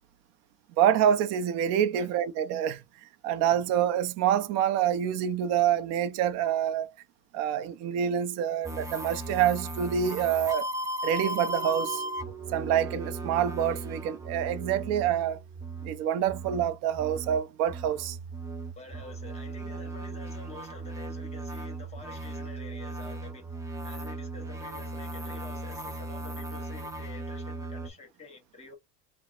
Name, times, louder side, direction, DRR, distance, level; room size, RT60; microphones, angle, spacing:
voice 1, 0.8-2.8 3.2-6.9 7.3-10.7 11.0-12.0 12.5-15.4 15.8-18.2, right 9 dB, 60° right, 0.5 m, -26 dB
sound 1, 8.6-27.9, right 1 dB, 10° right, 0.5 m, -37 dB
sound 2, 11.1-17.0, right 8 dB, 30° right, 0.9 m, -47 dB
voice 2, 18.8-23.6 23.8-28.7, left 4 dB, 20° left, 1.3 m, -48 dB
2.9 x 2.0 x 2.3 m
cardioid pair, 130°, 29 cm